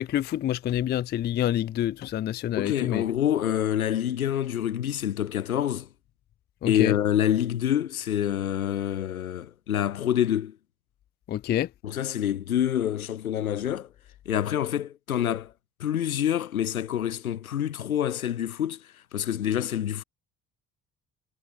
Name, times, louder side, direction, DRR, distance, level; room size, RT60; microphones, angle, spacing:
voice 1, 0.0-3.0 6.6-6.9 11.3-11.7, left 12 dB, 25° left, 0.4 m, -27 dB
voice 2, 2.6-5.9 6.7-10.6 11.8-13.9 14.3-15.5 15.8-20.0, left 10 dB, 80° left, 1.0 m, -27 dB
figure-of-eight pair, 50°, 42 cm